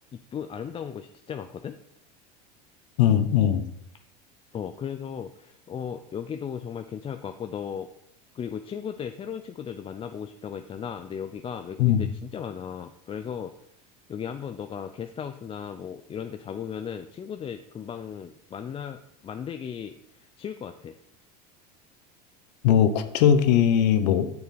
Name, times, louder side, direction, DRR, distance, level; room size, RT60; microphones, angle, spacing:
voice 1, 0.3-1.8 4.5-7.9 8.3-13.5 14.1-20.9, left 8 dB, 25° left, 7 dB, 0.5 m, -36 dB
voice 2, 3.0-3.7 11.8-12.0 22.6-24.3, left 9 dB, 80° left, 10 dB, 1.0 m, -20 dB
8.2 x 7.0 x 4.2 m, 0.74 s
supercardioid pair, 100°, 21 cm